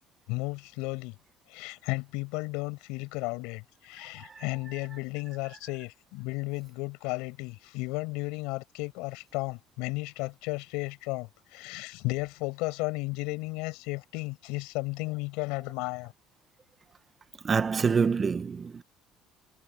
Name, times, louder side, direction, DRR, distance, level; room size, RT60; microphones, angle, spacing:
voice 1, 0.3-1.2 1.5-16.1, left 25 dB, 90° left, 7.6 m, -34 dB
voice 2, 17.4-18.8, right 5 dB, 25° right, 1.4 m, -26 dB
cardioid pair, 155°, 0 cm